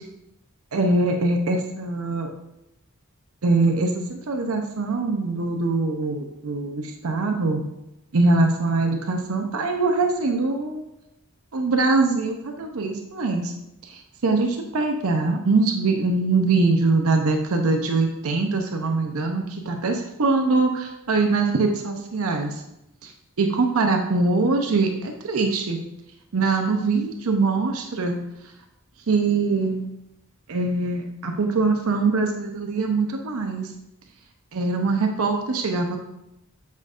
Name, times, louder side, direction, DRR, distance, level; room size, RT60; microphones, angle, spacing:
voice 1, 0.7-2.3 3.4-7.7 8.1-10.8 11.5-13.5 13.8-22.6 23.0-23.1 23.4-25.8 26.3-28.2 29.1-29.8 30.5-33.7 34.5-36.0, right 3 dB, 80° right, 3 dB, 0.6 m, -23 dB
7.5 x 5.2 x 2.5 m, 0.86 s
head